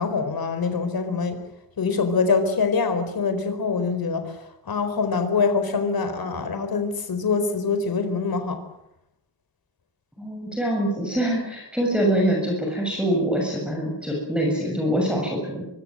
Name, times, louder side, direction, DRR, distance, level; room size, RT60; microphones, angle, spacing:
voice 1, 0.0-1.4 1.8-4.4 4.7-8.6, left 4 dB, 55° left, 8 dB, 4.5 m, -24 dB
voice 2, 10.2-15.6, right 1 dB, ahead, -1 dB, 7.1 m, -24 dB
24.5 x 24.0 x 7.8 m, 0.80 s
wide cardioid pair, 145°, 42 cm